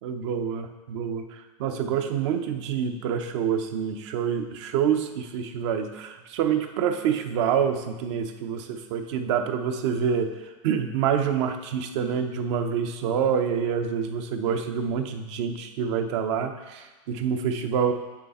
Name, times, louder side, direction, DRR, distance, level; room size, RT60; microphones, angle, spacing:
voice 1, 0.0-17.9, right 7 dB, 60° right, 7 dB, 0.8 m, -27 dB
7.8 x 6.1 x 4.2 m, 1.2 s
supercardioid pair, 145°, 17 cm